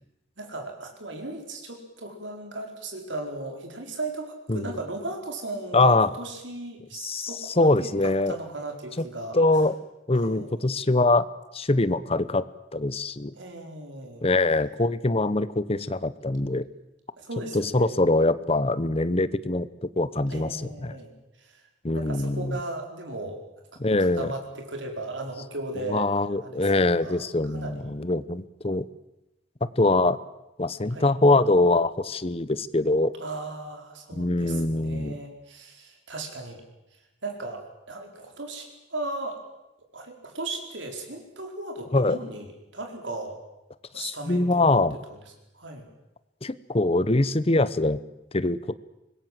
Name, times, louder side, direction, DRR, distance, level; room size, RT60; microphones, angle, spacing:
voice 1, 0.4-9.4 10.2-10.7 13.3-14.2 17.2-18.0 20.3-21.6 21.9-23.4 23.7-26.1 26.4-27.9 30.9-31.1 33.2-36.6 37.2-39.4 39.9-42.5 42.7-43.4 43.9-45.2 45.5-45.9, right 2 dB, 85° right, 4 dB, 4.7 m, -37 dB
voice 2, 5.7-6.1 6.9-8.4 9.3-9.7 10.1-11.3 11.5-12.4 12.7-13.3 14.2-16.6 17.5-20.9 21.8-22.6 23.8-24.3 25.9-28.8 29.6-30.2 30.6-33.1 34.1-35.2 41.9-42.2 44.0-45.0 46.4-48.0 48.3-48.8, left 2 dB, 30° left, 16 dB, 0.9 m, -23 dB
25.0 x 21.0 x 7.6 m, 0.95 s
head